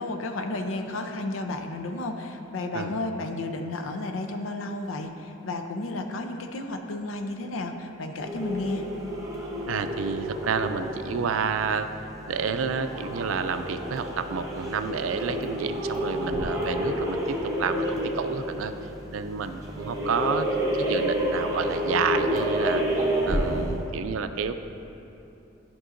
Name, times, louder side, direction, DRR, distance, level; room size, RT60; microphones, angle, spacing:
voice 1, 0.0-8.9, left 2 dB, 85° left, 5 dB, 0.5 m, -32 dB
sound 1, 8.2-23.9, equal, 15° right, 0.9 m, -30 dB
voice 2, 9.7-11.9 12.3-17.2 17.6-18.7 19.1-20.5 20.8-22.8 23.3-24.5, right 6 dB, 90° right, 9 dB, 0.4 m, -29 dB
12.5 x 5.3 x 2.5 m, 2.9 s
head